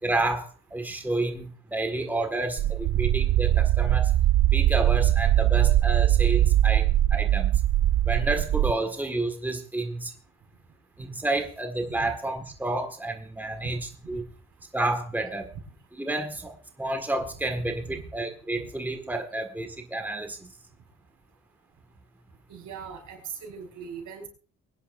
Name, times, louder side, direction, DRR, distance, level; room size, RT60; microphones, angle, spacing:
voice 1, 0.0-4.1 4.5-7.6 8.0-10.1 11.0-14.2 14.7-15.5 16.0-20.5, right 2 dB, 5° right, 5 dB, 1.7 m, -30 dB
sound 1, 2.6-8.7, right 13 dB, 60° right, 0.5 m, -21 dB
voice 2, 22.5-24.3, right 7 dB, 75° right, 3 dB, 4.6 m, -40 dB
23.5 x 10.0 x 2.6 m, 0.40 s
cardioid pair, 90°, 30 cm